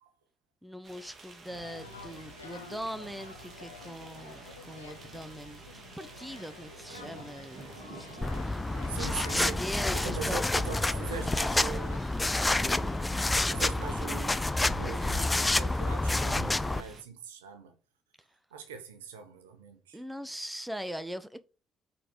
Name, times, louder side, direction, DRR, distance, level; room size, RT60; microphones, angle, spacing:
voice 1, 0.6-8.7 9.0-9.1 9.3-10.7 19.9-21.4, equal, 5° right, 1.0 m, -41 dB
sound 1, 0.8-17.0, right 3 dB, 40° right, 2.5 m, -49 dB
sound 2, 1.5-12.0, left 3 dB, 85° left, 1.2 m, -49 dB
voice 2, 6.7-7.1 8.9-9.6 9.9-12.1 13.5-17.7 18.5-20.0, right 6 dB, 75° right, 1.2 m, -41 dB
sound 3, 8.2-16.8, left 2 dB, 15° left, 0.6 m, -29 dB
8.9 x 4.4 x 5.1 m
figure-of-eight pair, 45°, 0 cm